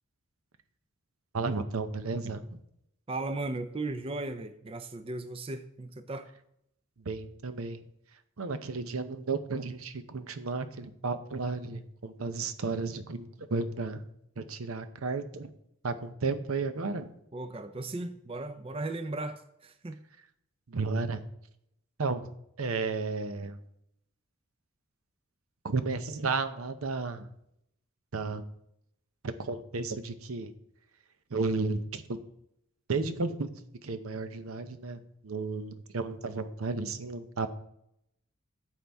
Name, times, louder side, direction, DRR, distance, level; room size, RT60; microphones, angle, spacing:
voice 1, 1.3-2.6 7.0-7.8 8.4-14.0 14.4-15.5 15.8-17.1 20.7-21.2 22.0-23.6 25.6-27.3 28.1-28.5 29.2-30.5 31.3-32.2 32.9-33.5 33.8-37.5, right 3 dB, 80° right, 10 dB, 0.7 m, -33 dB
voice 2, 3.1-6.3 17.3-20.0, right 2 dB, 25° right, 10 dB, 0.4 m, -36 dB
9.4 x 7.3 x 3.5 m, 0.77 s
head